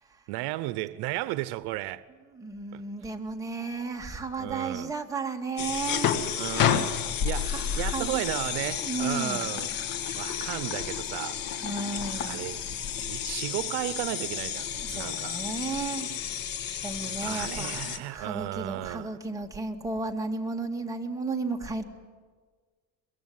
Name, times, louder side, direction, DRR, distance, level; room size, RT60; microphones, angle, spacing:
voice 1, 0.3-2.0 2.7-2.8 4.4-4.9 6.3-6.9 7.2-9.7 10.1-11.4 12.2-12.6 13.0-15.4 17.1-19.2, right 17 dB, 75° right, 0.8 m, -34 dB
voice 2, 2.3-6.2 7.4-8.2 8.8-9.5 11.6-12.7 14.8-16.1 16.8-21.8, right 3 dB, 10° right, 2.2 m, -34 dB
sound 1, 5.6-18.0, left 8 dB, 55° left, 2.1 m, -31 dB
23.0 x 22.5 x 9.6 m
cardioid pair, 135°, 39 cm